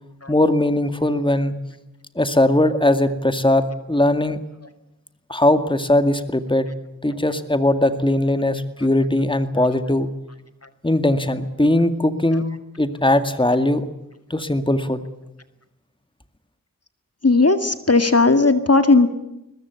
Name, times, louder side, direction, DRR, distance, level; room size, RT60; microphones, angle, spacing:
voice 1, 0.3-1.6 2.2-4.4 5.3-6.7 7.0-10.1 10.8-12.4 12.8-13.8 14.3-15.0, left 1 dB, 15° left, 10 dB, 2.1 m, -19 dB
voice 2, 17.2-19.1, left 3 dB, 45° left, 10 dB, 2.0 m, -15 dB
22.0 x 21.0 x 8.3 m, 0.92 s
wide cardioid pair, 50°, 33 cm